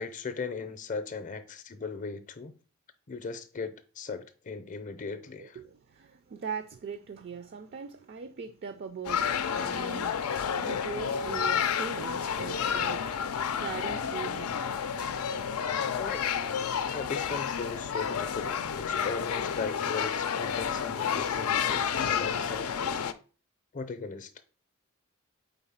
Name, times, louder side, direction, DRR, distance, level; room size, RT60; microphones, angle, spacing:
voice 1, 0.0-2.5 3.1-5.6 16.0-16.2 16.9-23.0 23.7-24.3, left 4 dB, 35° left, 0.6 m, -38 dB
voice 2, 5.4-10.2 10.7-15.5 16.4-16.8 18.4-18.5, right 6 dB, 45° right, 0.4 m, -41 dB
sound 1, 9.0-23.1, left 7 dB, 90° left, 0.5 m, -30 dB
4.5 x 4.0 x 5.5 m
head